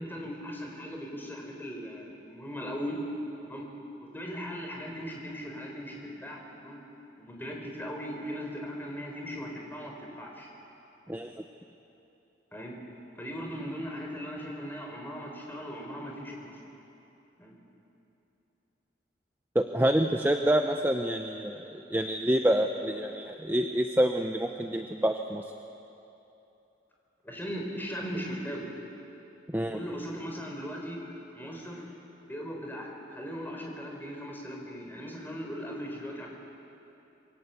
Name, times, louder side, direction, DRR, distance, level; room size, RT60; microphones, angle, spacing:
voice 1, 0.0-3.0 3.4-3.7 4.0-6.8 7.2-10.5 12.5-12.7 13.1-16.6 17.4-17.5 27.2-28.7 29.7-31.9 32.2-36.3, equal, 10° left, 0 dB, 4.2 m, -38 dB
voice 2, 19.5-25.4 29.5-29.8, right 1 dB, 10° right, 5 dB, 0.8 m, -27 dB
27.0 x 22.5 x 8.4 m, 2.9 s
head